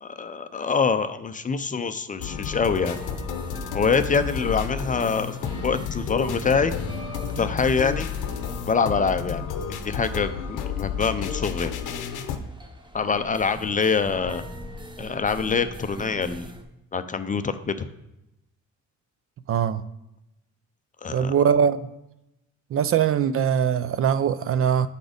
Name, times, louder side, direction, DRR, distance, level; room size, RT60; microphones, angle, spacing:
voice 1, 0.0-3.0 3.7-5.4 5.6-6.7 7.4-8.1 8.7-9.5 9.8-11.7 12.9-14.4 15.0-16.5 16.9-17.9 21.0-21.3, left 5 dB, 25° left, 0.4 m, -25 dB
sound 1, 2.2-12.4, left 7 dB, 85° left, 0.7 m, -31 dB
sound 2, 2.8-16.6, equal, 15° right, 0.9 m, -41 dB
voice 2, 19.5-19.8 21.1-21.9 22.7-24.9, right 8 dB, 45° right, 0.4 m, -21 dB
8.1 x 4.0 x 5.0 m
cardioid pair, 90°, 30 cm